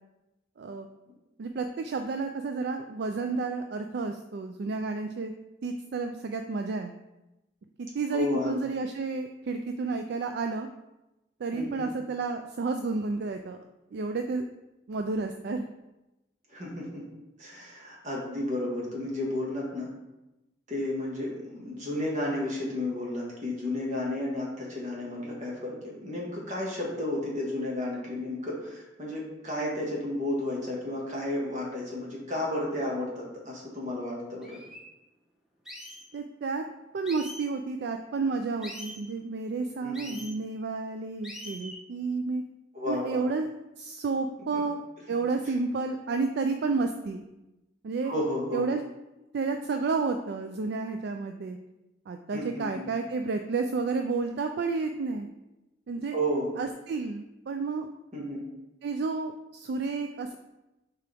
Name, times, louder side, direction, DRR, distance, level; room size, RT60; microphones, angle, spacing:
voice 1, 1.4-5.3 5.6-6.9 7.8-10.7 11.4-13.6 13.9-14.4 14.9-15.7 36.1-36.6 36.9-42.4 42.9-43.5 43.8-44.8 45.1-47.2 47.8-48.1 48.5-48.8 49.3-51.6 52.1-55.3 55.9-56.2 56.6-57.9 58.8-60.4, right 4 dB, 60° right, 6 dB, 0.4 m, -31 dB
voice 2, 8.1-8.6 11.5-11.9 16.5-17.0 17.4-19.9 20.7-34.6 39.8-40.2 42.7-43.2 44.5-44.6 48.0-48.7 52.3-52.9 56.1-56.5 58.1-58.4, left 1 dB, 40° right, -4 dB, 1.8 m, -32 dB
sound 1, 33.9-34.0 34.4-34.8 35.7-36.1 37.1-37.4 38.6-39.0 39.9-40.3 41.2-41.8, equal, 5° right, 1.0 m, -42 dB
6.7 x 4.7 x 3.5 m, 0.98 s
head